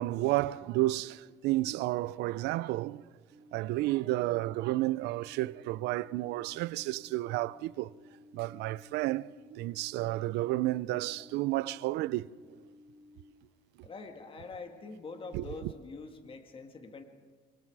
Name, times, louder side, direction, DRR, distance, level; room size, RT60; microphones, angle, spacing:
voice 1, 0.0-3.0 3.5-7.9 8.3-12.3 15.3-15.7, right 17 dB, 90° right, 0.5 m, -31 dB
sound 1, 3.3-13.3, left 2 dB, 40° right, 4.0 m, -57 dB
voice 2, 13.8-17.0, left 3 dB, 30° left, 2.0 m, -44 dB
26.0 x 24.5 x 4.8 m
cardioid pair, 110°, 17 cm